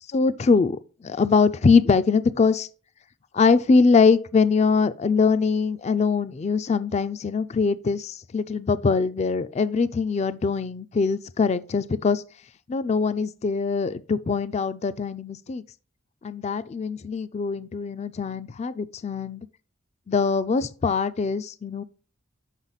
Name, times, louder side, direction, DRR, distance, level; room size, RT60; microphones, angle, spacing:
voice 1, 0.1-2.7 3.3-12.2 12.7-15.6 16.2-19.5 20.1-21.8, left 4 dB, 35° left, 0.3 m, -22 dB
7.3 x 5.6 x 4.0 m
head